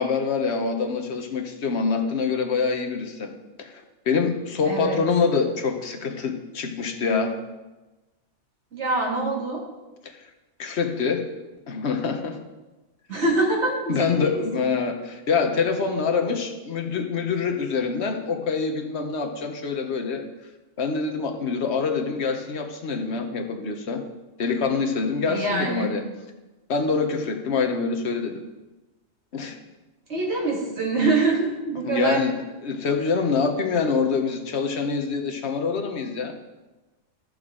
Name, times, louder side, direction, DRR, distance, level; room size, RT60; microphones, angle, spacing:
voice 1, 0.0-3.3 3.6-7.4 10.0-10.3 10.6-11.3 11.7-12.4 13.9-20.2 20.8-24.0 24.4-26.0 26.7-28.4 29.3-29.6 31.8-32.3 32.6-36.3, left 5 dB, 60° left, 5 dB, 1.1 m, -25 dB
voice 2, 4.7-5.0 8.7-9.6 13.1-14.7 25.3-25.9 30.1-32.2, right 3 dB, 60° right, -3 dB, 2.3 m, -25 dB
13.5 x 6.4 x 3.7 m, 1.1 s
omnidirectional pair, 1.3 m